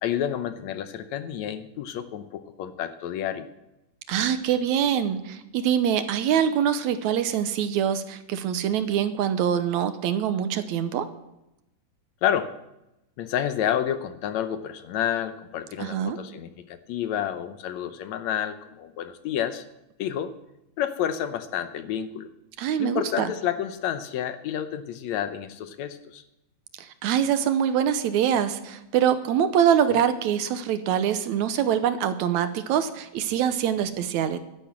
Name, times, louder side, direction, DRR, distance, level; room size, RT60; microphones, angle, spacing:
voice 1, 0.0-3.5 12.2-12.5 13.2-19.6 20.0-20.3 20.8-22.3 22.8-26.2, left 10 dB, 70° left, 10 dB, 1.9 m, -29 dB
voice 2, 4.1-11.1 15.8-16.2 22.6-23.3 26.8-34.4, right 9 dB, 75° right, 11 dB, 2.0 m, -24 dB
11.5 x 10.5 x 7.4 m, 0.89 s
omnidirectional pair, 3.7 m